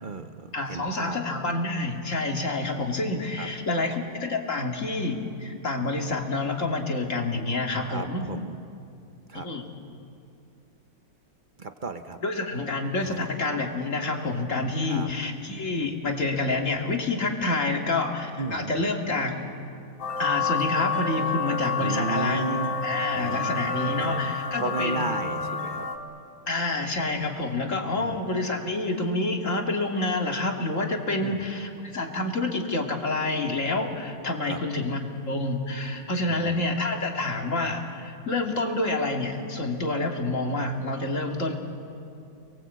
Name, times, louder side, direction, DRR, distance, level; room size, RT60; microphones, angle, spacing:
voice 1, 0.0-1.2 3.4-3.5 7.8-8.6 9.3-9.5 11.6-12.2 13.1-13.3 14.9-15.1 18.4-18.8 21.8-22.8 23.1-24.3 24.6-25.9 28.0-28.1 31.2-31.4 34.5-34.6 36.3-36.7, right 3 dB, 50° right, 8 dB, 0.5 m, -34 dB
voice 2, 0.5-8.3 9.3-9.6 12.2-19.4 20.2-25.2 26.5-41.6, left 2 dB, 40° left, 2 dB, 2.4 m, -28 dB
sound 1, 20.0-26.0, left 4 dB, 85° left, 2.5 m, -29 dB
30.0 x 22.0 x 8.2 m, 2.6 s
omnidirectional pair, 2.1 m